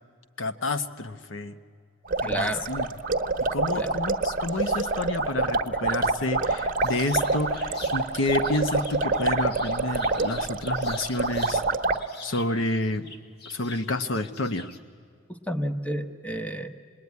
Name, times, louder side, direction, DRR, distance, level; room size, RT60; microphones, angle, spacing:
voice 1, 0.4-1.6 2.2-2.9 3.5-11.6 12.2-13.1 13.5-14.7, left 2 dB, 75° left, 10 dB, 1.0 m, -29 dB
sound 1, 2.1-12.0, right 3 dB, 45° right, 1.1 m, -26 dB
voice 2, 2.2-2.7 3.7-3.9 15.5-16.7, right 1 dB, 5° left, 8 dB, 1.1 m, -30 dB
sound 2, 6.8-11.6 11.9-14.8, left 4 dB, 55° left, 1.7 m, -45 dB
26.5 x 20.5 x 9.5 m, 2.2 s
head